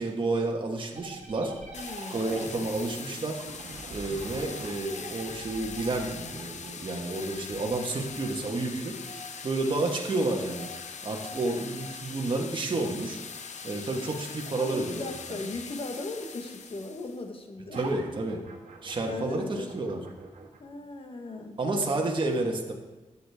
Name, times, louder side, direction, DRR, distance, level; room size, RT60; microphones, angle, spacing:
voice 1, 0.0-1.5 2.1-3.4 3.9-8.9 9.4-10.7 11.0-13.2 13.6-15.1 17.7-18.4 18.8-20.0 21.6-22.7, right 2 dB, 40° right, 1 dB, 1.5 m, -30 dB
sound 1, 0.9-10.4 17.7-20.6, right 4 dB, 70° right, 1.5 m, -46 dB
sound 2, 1.7-17.2, left 5 dB, 70° left, 0.8 m, -42 dB
voice 2, 1.7-2.3 11.3-11.6 14.6-17.9 19.1-19.9 20.6-21.6, left 2 dB, 45° left, 4 dB, 1.4 m, -38 dB
13.0 x 8.4 x 3.6 m, 1.2 s
wide cardioid pair, 135°, 12 cm